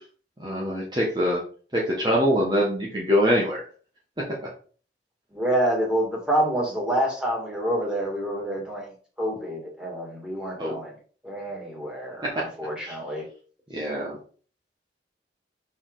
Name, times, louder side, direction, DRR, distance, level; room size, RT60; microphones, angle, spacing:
voice 1, 0.4-1.4 1.7-3.6 4.2-4.3 10.6-10.7 12.8-12.9 13.7-14.2, equal, 25° right, -4 dB, 1.3 m, -24 dB
voice 2, 5.3-11.0 11.2-13.3, right 1 dB, 5° right, -3 dB, 2.3 m, -27 dB
6.3 x 4.4 x 4.0 m, 0.41 s
head